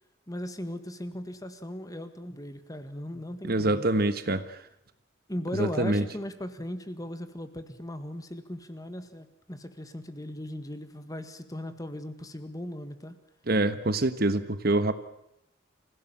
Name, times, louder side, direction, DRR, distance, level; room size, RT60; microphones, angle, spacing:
voice 1, 0.3-3.9 5.3-13.2, left 1 dB, 20° left, 10 dB, 1.7 m, -38 dB
voice 2, 3.4-4.6 5.6-6.0 13.5-14.9, right 2 dB, 55° right, 12 dB, 1.4 m, -25 dB
26.0 x 16.5 x 8.9 m, 0.78 s
head